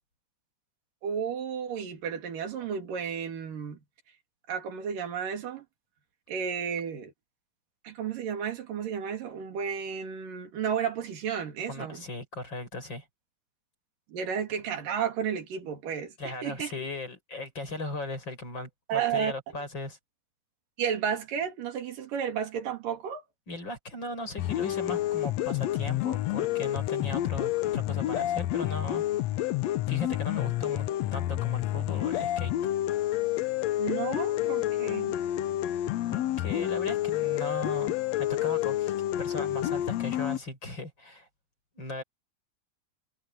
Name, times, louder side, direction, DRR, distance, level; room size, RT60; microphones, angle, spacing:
voice 1, 1.0-3.8 4.5-5.6 6.3-7.1 7.8-12.0 14.1-16.7 18.9-19.3 20.8-23.2 33.8-35.2, right 7 dB, 90° right, 4.2 m, -32 dB
voice 2, 11.7-13.1 16.2-20.0 23.5-29.5 29.9-32.7 36.1-41.3 41.7-42.0, left 2 dB, 35° left, 6.6 m, -38 dB
sound 1, 24.4-40.4, left 14 dB, 70° left, 1.7 m, -29 dB
omnidirectional pair, 3.7 m